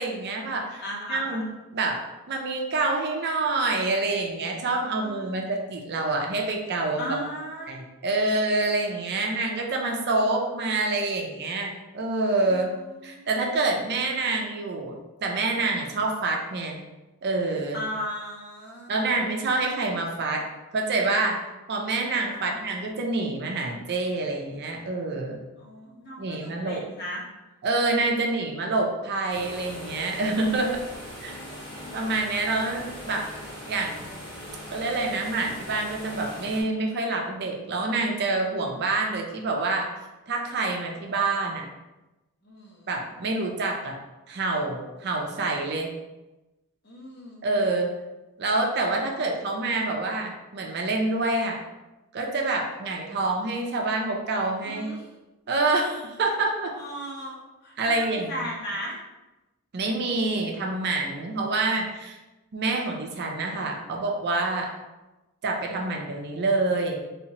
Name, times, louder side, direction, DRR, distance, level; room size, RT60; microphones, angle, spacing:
voice 1, 0.0-0.8 1.1-1.4 1.7-2.0 2.3-7.2 7.7-12.7 13.0-16.8 17.2-17.8 18.9-20.4 20.7-21.4 21.7-25.4 26.2-26.8 27.6-30.8 31.2-31.3 31.9-33.3 33.7-34.2 34.7-39.9 40.3-41.6 42.9-44.0 44.3-45.9 47.4-47.9 48.4-51.6 52.1-54.9 55.5-56.7 57.8-58.5 59.7-62.2 62.5-64.7 65.4-67.0, right 2 dB, 50° right, 1 dB, 0.5 m, -27 dB
voice 2, 0.8-1.5 5.0-5.4 7.0-7.8 12.5-13.3 17.7-19.2 22.3-22.6 25.6-27.2 28.1-28.3 31.3-32.0 42.4-43.0 46.8-47.4 49.1-49.2 54.6-55.1 56.7-59.0, equal, 45° left, -3 dB, 0.9 m, -37 dB
sound 1, 29.3-36.6, equal, 20° left, 1.0 m, -40 dB
3.3 x 2.9 x 2.8 m, 1.0 s
head